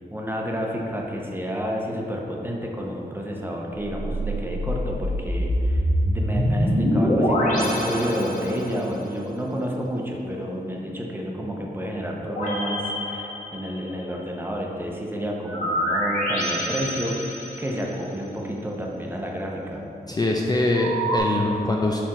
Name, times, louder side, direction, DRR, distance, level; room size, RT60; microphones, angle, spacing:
voice 1, 0.1-19.8, equal, 15° right, -1 dB, 0.7 m, -30 dB
sound 1, 3.8-8.9 12.2-14.0 15.4-18.0 20.7-21.2, equal, 50° left, 1.4 m, -25 dB
voice 2, 20.1-22.0, left 2 dB, 25° left, -1 dB, 0.4 m, -23 dB
5.7 x 4.6 x 3.7 m, 2.7 s
wide cardioid pair, 115°, 17 cm